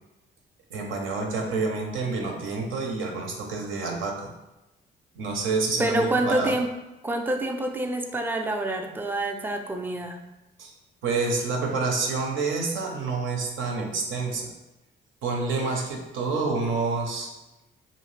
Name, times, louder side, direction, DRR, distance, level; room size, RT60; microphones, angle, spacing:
voice 1, 0.7-4.3 5.2-6.5 10.6-10.7 11.0-14.5 15.2-17.3, right 3 dB, 80° right, 1 dB, 0.7 m, -28 dB
voice 2, 5.8-6.7 7.0-10.2, right 1 dB, 10° right, 4 dB, 0.3 m, -27 dB
2.7 x 2.4 x 3.2 m, 0.98 s
cardioid pair, 90°, 20 cm